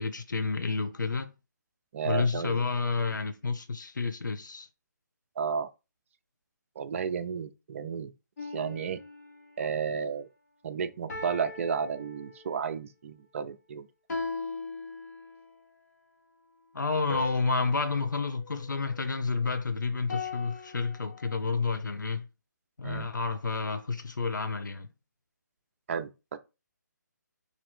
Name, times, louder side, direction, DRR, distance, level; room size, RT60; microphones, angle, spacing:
voice 1, 0.0-1.3 2.0-4.7 16.7-22.3 22.8-24.9, left 4 dB, 80° left, 0.6 m, -30 dB
voice 2, 1.9-2.6 5.4-5.7 6.8-8.1 8.5-9.0 9.6-10.3 10.6-13.9 22.8-23.1 25.9-26.4, right 6 dB, 45° right, 0.5 m, -32 dB
sound 1, 8.4-9.7 11.1-12.7 14.1-15.6 17.1-19.5 20.1-21.4, left 4 dB, 60° left, 1.3 m, -40 dB
3.3 x 2.6 x 4.2 m
figure-of-eight pair, 145°, 10 cm